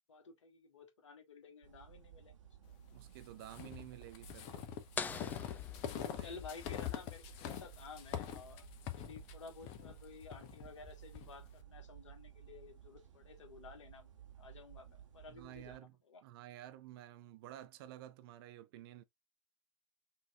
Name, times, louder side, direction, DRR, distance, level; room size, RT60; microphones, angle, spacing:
voice 1, 0.1-2.3 2.6-2.7 5.8-8.7 8.9-14.1 14.4-16.2, left 4 dB, 70° left, 1.2 m, -53 dB
sound 1, 1.6-15.8, right 10 dB, 75° right, 1.2 m, -57 dB
voice 2, 2.9-4.7 6.2-6.4 15.3-19.0, right 13 dB, 45° right, 0.5 m, -52 dB
sound 2, 3.4-11.3, left 10 dB, 40° left, 0.8 m, -44 dB
sound 3, 5.0-6.6, left 5 dB, 10° left, 0.3 m, -43 dB
5.6 x 2.9 x 2.3 m
figure-of-eight pair, 100°, 16 cm